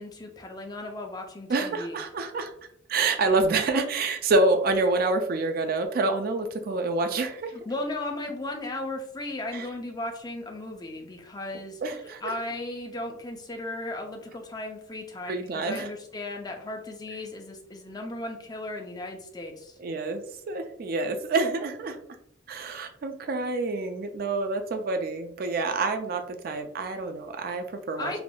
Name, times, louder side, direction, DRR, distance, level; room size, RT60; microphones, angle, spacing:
voice 1, 0.0-2.0 7.5-19.8 28.0-28.2, left 2 dB, 20° left, 2 dB, 0.4 m, -36 dB
voice 2, 1.5-2.5 2.9-7.5 9.5-9.7 11.8-12.3 15.3-15.9 19.8-22.0 22.5-28.2, right 3 dB, 50° right, 6 dB, 0.3 m, -27 dB
3.4 x 2.4 x 2.2 m, 0.69 s
head